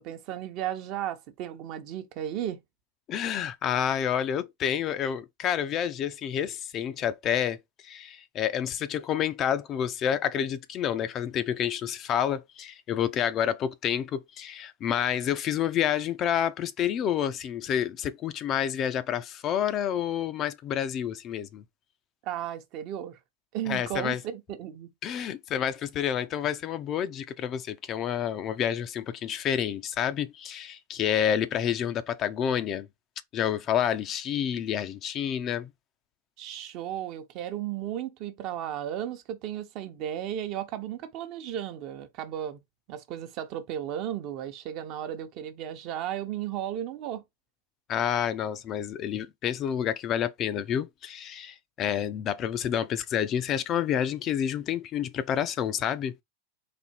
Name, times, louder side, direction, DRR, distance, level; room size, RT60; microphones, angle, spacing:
voice 1, 0.0-2.6 22.2-23.2 23.5-24.9 36.4-42.6 42.9-47.2, right 11 dB, 45° right, 0.8 m, -34 dB
voice 2, 3.1-7.6 7.8-21.6 23.7-24.2 25.0-32.9 33.3-35.7 47.9-56.2, left 9 dB, 35° left, 0.5 m, -29 dB
4.2 x 2.7 x 4.3 m
supercardioid pair, 135°, 0 cm